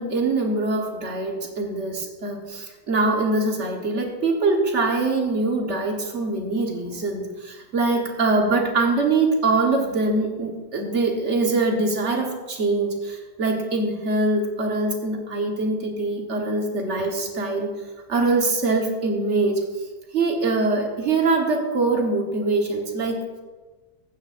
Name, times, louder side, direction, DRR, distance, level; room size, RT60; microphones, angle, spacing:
voice 1, 0.0-17.7 18.1-19.6 20.1-23.2, right 3 dB, 50° right, 2 dB, 1.6 m, -23 dB
14.5 x 9.3 x 2.6 m, 1.3 s
omnidirectional pair, 1.6 m